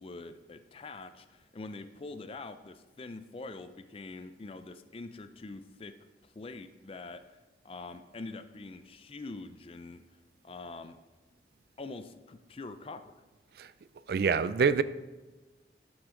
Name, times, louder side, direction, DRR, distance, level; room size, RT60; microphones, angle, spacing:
voice 1, 0.0-5.9 6.2-7.2 7.6-10.0 10.4-11.0 11.8-13.1, left 3 dB, 30° left, 10 dB, 0.4 m, -44 dB
voice 2, 14.1-14.8, right 5 dB, 60° right, 15 dB, 0.4 m, -26 dB
11.5 x 6.0 x 3.7 m, 1.2 s
head